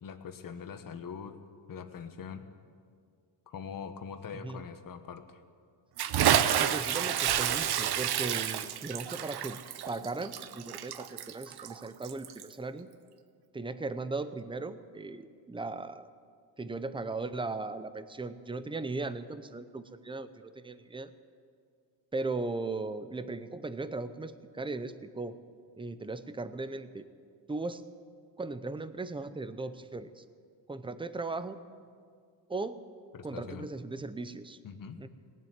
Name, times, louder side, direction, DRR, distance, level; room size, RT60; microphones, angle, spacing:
voice 1, 0.0-1.4 1.7-2.4 3.5-5.4 33.1-33.7 34.6-35.0, left 6 dB, 50° left, 8 dB, 1.2 m, -42 dB
Bathtub (filling or washing) / Splash splatter, 6.0-12.5, right 10 dB, 60° right, 0.8 m, -29 dB
voice 2, 6.6-9.6 9.9-12.9 13.5-16.1 16.6-20.3 20.6-21.1 22.1-25.4 25.8-27.1 27.5-27.8 28.4-30.2 30.7-31.6 32.5-32.8 33.2-34.6 35.0-35.1, right 3 dB, 10° right, 12 dB, 0.6 m, -37 dB
19.0 x 7.5 x 9.4 m, 2.1 s
cardioid pair, 130°, 43 cm